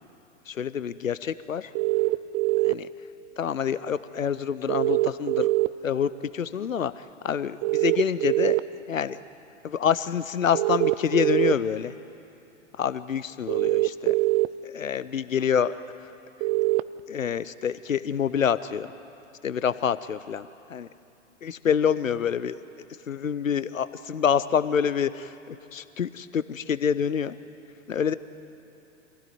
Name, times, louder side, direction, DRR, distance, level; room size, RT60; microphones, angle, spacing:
voice 1, 0.5-1.7 2.6-2.9 3.4-5.5 5.8-8.6 8.9-9.2 9.6-11.9 12.8-14.2 14.6-15.8 17.1-18.9 19.4-20.9 21.4-22.5 23.1-27.3 27.9-28.1, left 7 dB, 90° left, 15 dB, 0.7 m, -27 dB
sound 1, 1.7-2.7 4.7-5.7 7.6-8.6 10.5-11.5 13.5-14.5 16.4-16.8, right 19 dB, 35° right, 0.5 m, -23 dB
25.0 x 16.5 x 9.3 m, 2.8 s
figure-of-eight pair, 100°, 38 cm